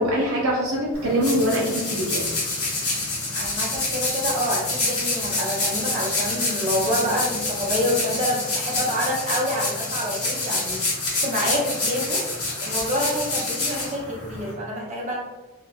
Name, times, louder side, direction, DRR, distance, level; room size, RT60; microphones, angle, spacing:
voice 1, 0.0-2.2, equal, 65° right, -3 dB, 0.5 m, -23 dB
sound 1, 0.9-14.5, left 2 dB, 80° left, 1.0 m, -27 dB
voice 2, 3.3-11.0 11.2-15.2, equal, 35° right, -5 dB, 0.8 m, -27 dB
2.8 x 2.2 x 2.6 m, 1.1 s
head